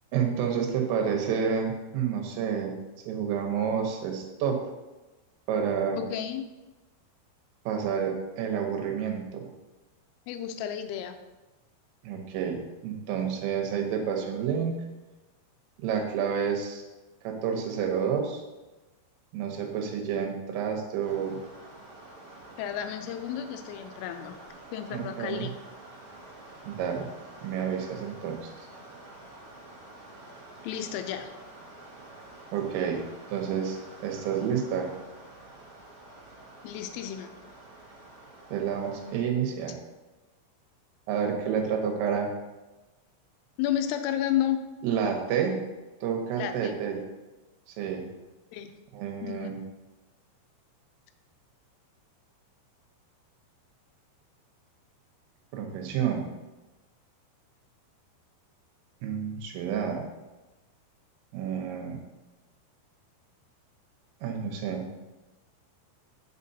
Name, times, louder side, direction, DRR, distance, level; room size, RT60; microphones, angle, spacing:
voice 1, 0.1-2.8 3.1-4.6 5.5-6.0 7.7-9.5 12.0-14.8 15.8-16.8 17.3-18.4 19.3-21.4 24.9-25.5 26.7-27.1 27.4-28.5 32.5-34.9 38.5-39.8 41.1-42.3 44.8-45.6 46.0-47.0 47.8-48.1 48.9-49.6 55.5-56.2 59.0-60.0 61.3-62.0 64.2-64.8, right 7 dB, 85° right, 2 dB, 3.6 m, -29 dB
voice 2, 6.0-6.4 10.3-11.2 22.6-24.4 24.7-25.5 28.8-28.9 30.6-31.3 36.6-37.3 43.6-44.6 46.4-46.7 48.5-48.7 49.2-49.5, left 10 dB, 85° left, 8 dB, 3.1 m, -32 dB
sound 1, 21.0-39.2, right 2 dB, 45° right, 3.0 m, -48 dB
8.9 x 6.0 x 2.7 m, 1.1 s
omnidirectional pair, 5.7 m